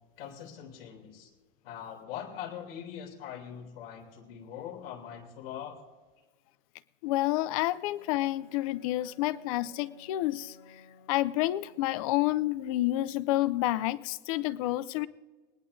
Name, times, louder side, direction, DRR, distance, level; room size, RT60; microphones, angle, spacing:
voice 1, 0.2-1.3 1.6-5.8, left 9 dB, 80° left, 1 dB, 3.1 m, -42 dB
voice 2, 7.0-10.6 11.1-15.1, left 16 dB, 40° left, 18 dB, 0.4 m, -29 dB
Bowed string instrument, 7.8-12.3, left 5 dB, 55° left, 1.8 m, -57 dB
19.5 x 19.5 x 2.7 m, 1.3 s
supercardioid pair, 170°, 29 cm